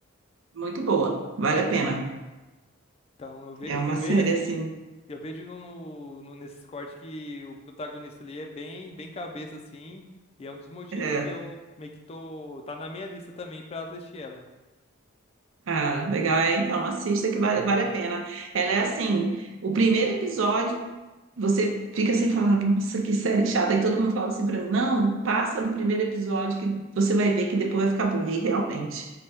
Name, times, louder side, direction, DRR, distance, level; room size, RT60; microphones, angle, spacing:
voice 1, 0.5-2.1 3.7-4.7 10.9-11.3 15.7-20.8 21.4-29.1, right 3 dB, 70° right, 3 dB, 0.5 m, -25 dB
voice 2, 3.2-4.6 5.1-10.0 10.4-14.4, left 2 dB, 30° left, 3 dB, 0.3 m, -39 dB
3.3 x 2.2 x 4.2 m, 1.1 s
head